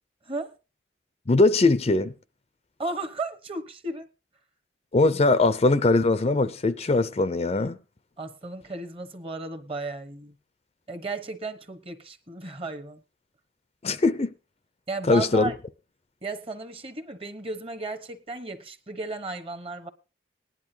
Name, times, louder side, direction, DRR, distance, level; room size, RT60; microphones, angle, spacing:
voice 1, 1.3-2.1 4.9-7.8 13.8-14.3 15.1-15.5, left 3 dB, 35° left, 0.5 m, -21 dB
voice 2, 2.8-4.1 8.2-10.3 10.9-13.0 14.9-15.6 16.2-19.9, right 2 dB, 30° right, 1.1 m, -34 dB
19.0 x 10.5 x 2.8 m
head